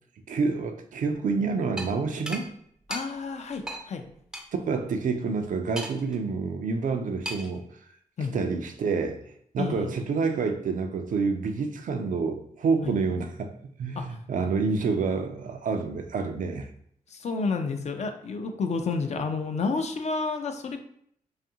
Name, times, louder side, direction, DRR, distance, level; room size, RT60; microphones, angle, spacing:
voice 1, 0.3-2.5 4.5-7.6 8.3-9.2 9.5-13.5 13.8-16.7, right 4 dB, 65° right, 6 dB, 0.4 m, -28 dB
sound 1, 1.8-1.9 2.3-2.4 2.9-3.0 3.7-3.8 4.3-4.4 5.8-6.1 7.2-7.6, equal, 5° right, 0.5 m, -34 dB
voice 2, 2.9-4.0 8.2-8.3 9.6-9.9 12.8-12.9 14.0-14.2 17.1-20.8, left 4 dB, 50° left, 6 dB, 0.4 m, -30 dB
2.6 x 2.4 x 2.7 m, 0.68 s
cardioid pair, 60°, 15 cm